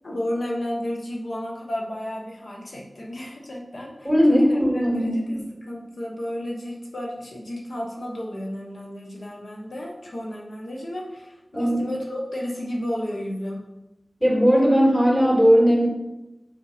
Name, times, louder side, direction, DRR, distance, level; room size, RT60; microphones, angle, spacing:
voice 1, 0.0-13.6, left 1 dB, 80° left, -1 dB, 1.1 m, -32 dB
voice 2, 4.0-5.4 11.5-11.8 14.2-15.9, equal, 10° left, -3 dB, 2.6 m, -18 dB
5.7 x 5.6 x 4.9 m, 0.98 s
wide cardioid pair, 60°, 0 cm